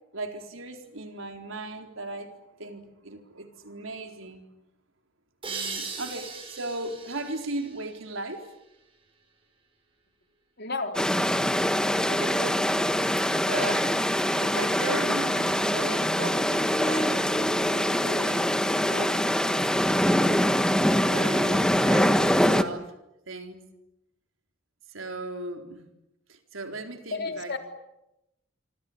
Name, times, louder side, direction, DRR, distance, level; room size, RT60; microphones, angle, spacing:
voice 1, 0.1-4.5 5.4-8.5 12.1-12.7 13.5-18.5 18.9-19.3 20.8-22.9 23.3-23.6 24.9-25.8 26.3-27.6, right 2 dB, 90° right, 5 dB, 4.2 m, -37 dB
sound 1, 5.4-8.8, right 4 dB, 30° right, 7.9 m, -39 dB
voice 2, 10.6-11.0 27.1-27.6, left 3 dB, 55° left, 5 dB, 3.8 m, -31 dB
sound 2, 10.9-22.6, equal, 5° left, 1.4 m, -24 dB
27.5 x 24.5 x 8.8 m, 0.90 s
head